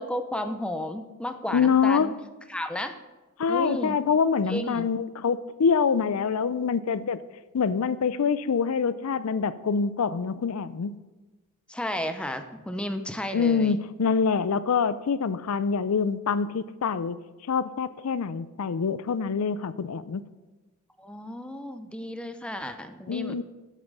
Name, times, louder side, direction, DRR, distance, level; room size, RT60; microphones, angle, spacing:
voice 1, 0.0-2.1 2.5-3.0 3.5-4.0 4.5-4.9 11.7-13.8 21.0-23.4, left 1 dB, 5° left, 8 dB, 0.5 m, -33 dB
voice 2, 1.5-2.1 3.4-7.2 7.5-11.0 13.3-17.2 17.5-20.2 23.1-23.4, left 6 dB, 85° left, 15 dB, 0.5 m, -25 dB
8.0 x 7.3 x 5.3 m, 1.1 s
head